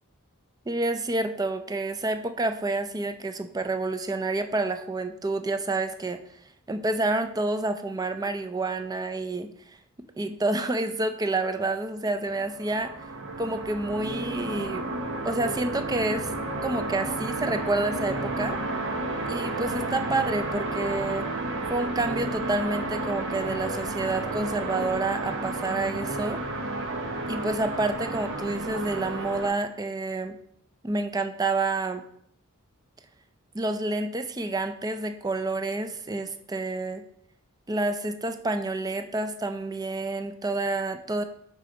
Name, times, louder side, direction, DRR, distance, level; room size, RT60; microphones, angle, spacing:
voice 1, 0.7-6.2 6.7-9.5 10.2-12.9 13.4-14.9 15.2-16.3 16.6-18.6 19.3-21.3 21.7-26.4 27.3-30.4 30.8-32.0 33.5-37.0 37.7-41.2, right 2 dB, 15° right, 8 dB, 0.4 m, -29 dB
sound 1, 12.3-29.5, right 2 dB, 60° right, 1.0 m, -31 dB
6.6 x 5.1 x 3.8 m, 0.69 s
head